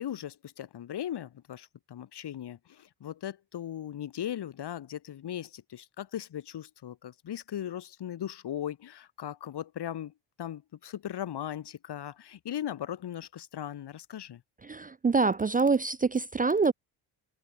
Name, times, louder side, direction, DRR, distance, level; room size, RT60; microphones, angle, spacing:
voice 1, 0.0-10.1 10.4-14.4, left 10 dB, 60° left, 3.4 m, -38 dB
voice 2, 14.7-16.7, right 4 dB, 20° right, 0.5 m, -25 dB
supercardioid pair, 70°, 46 cm